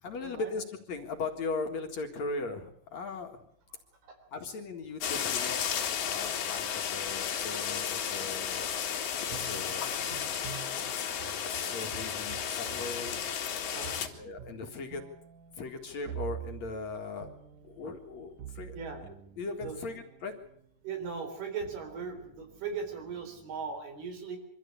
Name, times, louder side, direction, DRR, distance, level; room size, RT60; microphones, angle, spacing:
voice 1, 0.0-3.5 4.3-5.7 5.9-8.7 9.2-9.9 11.5-13.2 14.2-15.0 15.5-17.3 17.6-20.3, left 3 dB, 55° left, 4 dB, 2.7 m, -38 dB
sound 1, 5.0-14.1, left 8 dB, 80° left, 3.8 m, -33 dB
sound 2, 9.2-20.7 21.4-23.8, right 9 dB, 65° right, 2.6 m, -47 dB
voice 2, 13.7-14.2 18.7-19.0 19.6-19.8 20.8-24.4, right 5 dB, 80° right, 5 dB, 6.1 m, -38 dB
24.0 x 14.5 x 8.5 m, 0.73 s
omnidirectional pair, 4.4 m